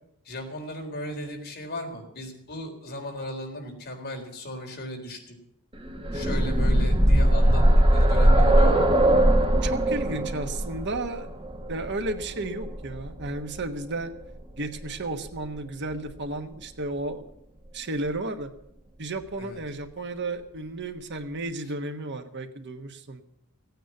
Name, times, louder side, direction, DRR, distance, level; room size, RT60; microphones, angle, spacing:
voice 1, 0.2-5.4 6.1-7.6 7.9-8.9 19.4-19.6, left 1 dB, 45° left, 2 dB, 4.0 m, -36 dB
sound 1, 5.8-13.6 14.8-14.9 15.3-15.4, right 1 dB, 25° right, 1.3 m, -20 dB
voice 2, 9.4-11.3 11.7-14.1 14.6-17.3 17.7-18.5 19.0-23.2, right 2 dB, 55° right, 7 dB, 1.3 m, -33 dB
17.0 x 9.3 x 9.2 m, 0.77 s
head